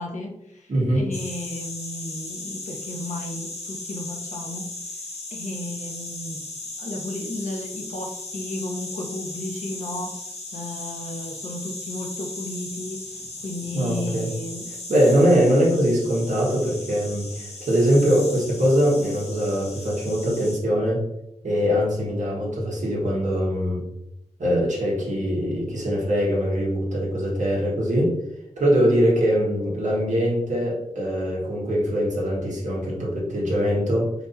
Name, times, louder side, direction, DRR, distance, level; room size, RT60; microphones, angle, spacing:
voice 1, 0.0-4.7 5.3-6.4 6.8-10.1 10.5-13.0 13.4-14.7, left 1 dB, 80° left, 0 dB, 1.0 m, -34 dB
voice 2, 0.7-1.1 13.7-14.3 14.9-21.0 21.4-23.8 24.4-28.2 28.6-34.1, equal, 85° right, -4 dB, 1.5 m, -22 dB
sound 1, 1.1-20.6, left 2 dB, 60° left, 1.5 m, -37 dB
4.4 x 4.2 x 2.7 m, 0.83 s
wide cardioid pair, 85°, 12 cm